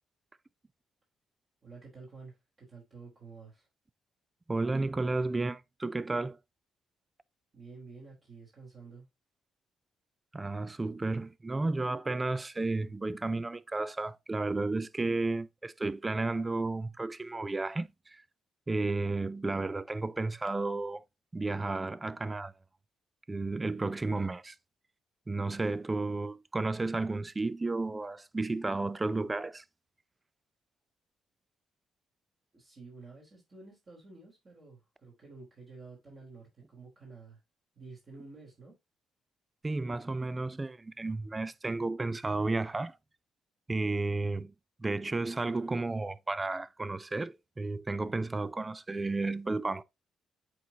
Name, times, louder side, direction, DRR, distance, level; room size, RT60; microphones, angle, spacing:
voice 1, 1.6-3.7 7.5-9.1 32.5-37.4 37.8-38.8, right 4 dB, 40° right, 3.6 m, -51 dB
voice 2, 4.5-6.4 10.3-18.2 18.7-21.0 21.3-22.5 23.3-24.5 25.3-29.6 39.6-43.0 43.7-44.5 44.8-49.8, right 3 dB, 20° right, 0.4 m, -32 dB
8.4 x 4.1 x 2.8 m
cardioid pair, 90°, 0 cm